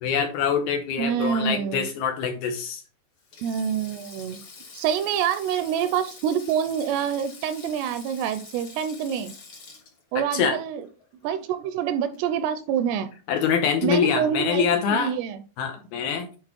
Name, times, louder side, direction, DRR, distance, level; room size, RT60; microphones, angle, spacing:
voice 1, 0.0-2.8 10.2-10.6 13.3-15.1 15.6-16.3, left 6 dB, 75° left, 2.4 m, -24 dB
voice 2, 1.0-1.9 3.4-4.4 4.7-9.3 10.1-10.9 11.2-13.1 13.8-15.4, right 8 dB, 80° right, 2.5 m, -26 dB
Sink (filling or washing), 3.2-11.6 11.9-12.2 13.3-13.6, left 4 dB, 50° left, 1.5 m, -46 dB
8.6 x 4.2 x 4.4 m
omnidirectional pair, 5.0 m